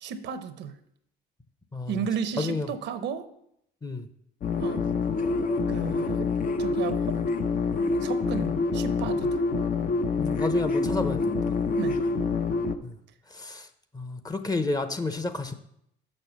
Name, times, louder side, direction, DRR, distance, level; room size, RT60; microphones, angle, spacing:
voice 1, 0.0-0.8 1.9-3.3 4.6-4.9 5.7-6.3 6.6-7.2 8.0-9.4 11.8-12.0, right 7 dB, 65° right, 11 dB, 0.8 m, -33 dB
voice 2, 1.7-2.1 2.4-2.7 3.8-4.1 10.2-11.3 12.8-12.9 13.3-13.7 13.9-15.5, left 3 dB, 20° left, 9 dB, 0.8 m, -30 dB
sound 1, 4.4-12.7, left 4 dB, 45° left, 0.7 m, -26 dB
6.5 x 6.2 x 6.0 m, 0.75 s
supercardioid pair, 80°, 20 cm